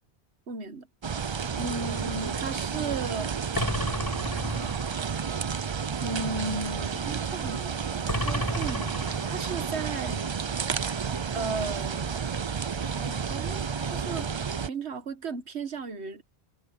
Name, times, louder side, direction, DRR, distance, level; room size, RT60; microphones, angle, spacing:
voice 1, 0.5-0.9 1.5-3.3 6.0-10.3 11.3-12.3 12.9-14.3 14.6-16.2, right 4 dB, 80° right, 1.6 m, -35 dB
sound 1, 1.0-14.7, right 6 dB, 40° right, 0.4 m, -31 dB
sound 2, 3.5-5.0 8.1-9.6, left 1 dB, 20° left, 5.3 m, -32 dB
omnidirectional pair, 1.1 m